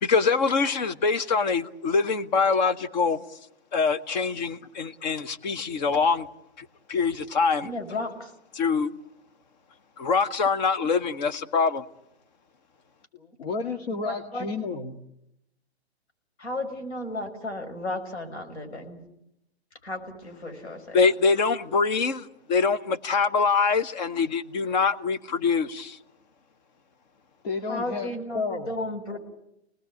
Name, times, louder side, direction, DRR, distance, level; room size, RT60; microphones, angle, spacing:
voice 1, 0.0-3.2 3.7-6.3 6.9-7.7 8.6-8.9 10.0-11.8 20.9-26.0, left 5 dB, 40° left, 15 dB, 1.3 m, -24 dB
voice 2, 7.6-8.3 14.0-14.5 16.4-19.0 19.8-21.0 27.7-29.2, left 2 dB, 85° left, 4 dB, 6.2 m, -34 dB
voice 3, 13.1-15.0 27.4-28.7, left 4 dB, 65° left, 4 dB, 2.2 m, -31 dB
27.5 x 19.5 x 8.6 m, 0.81 s
hypercardioid pair, 150°, 33 cm